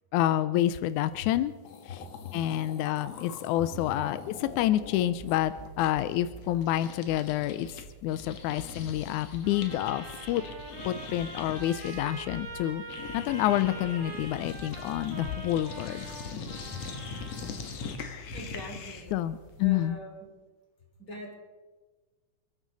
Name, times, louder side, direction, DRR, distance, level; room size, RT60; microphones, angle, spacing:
voice 1, 0.1-1.5 1.9-2.0 2.3-10.4 10.9-12.8 13.1-16.0 19.1-20.0, left 13 dB, 85° left, 12 dB, 2.0 m, -28 dB
sound 1, 1.3-1.4 1.6-7.8 8.1-19.2, left 6 dB, 65° left, 2.4 m, -43 dB
voice 2, 2.2-2.7 18.3-19.2 19.6-20.2 21.0-21.3, equal, 30° left, -3 dB, 5.0 m, -43 dB
sound 2, 4.4-19.8, right 1 dB, 10° left, 2.5 m, -49 dB
Trumpet, 9.4-17.6, right 3 dB, 70° right, 3.2 m, -44 dB
29.0 x 10.0 x 4.1 m, 1.3 s
omnidirectional pair, 3.4 m